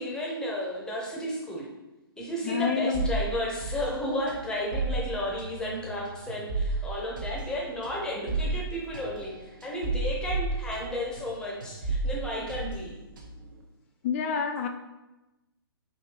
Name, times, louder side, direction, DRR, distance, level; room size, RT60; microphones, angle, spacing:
voice 1, 0.0-1.7 2.2-12.9, left 1 dB, 5° left, -3 dB, 0.7 m, -33 dB
voice 2, 2.4-3.1 14.0-14.7, left 6 dB, 35° left, 5 dB, 0.4 m, -28 dB
sound 1, 2.9-11.3 11.6-13.5, right 3 dB, 55° right, 0.9 m, -33 dB
5.1 x 2.7 x 2.9 m, 1.0 s
figure-of-eight pair, 125°, 13 cm